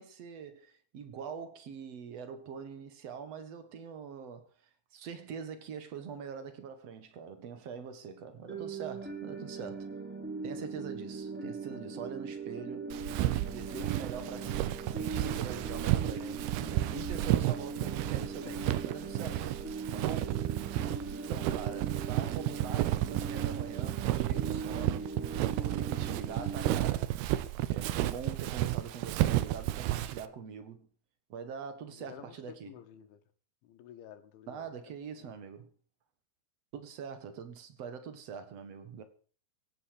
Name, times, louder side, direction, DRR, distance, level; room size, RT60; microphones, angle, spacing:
voice 1, 0.0-4.5 4.9-9.9 10.4-12.9 13.4-16.5 16.9-19.5 19.9-20.4 21.3-25.1 25.6-27.1 27.7-30.9 31.3-32.8 34.5-35.7 36.7-39.0, right 7 dB, 55° right, 1.9 m, -43 dB
sound 1, 8.5-26.9, right 4 dB, ahead, 3.9 m, -40 dB
Walk footsteps, 12.9-30.3, right 15 dB, 75° right, 2.5 m, -32 dB
voice 2, 32.0-33.2 33.6-34.7 35.2-35.3, left 10 dB, 85° left, 4.0 m, -52 dB
17.5 x 10.0 x 6.6 m
omnidirectional pair, 5.3 m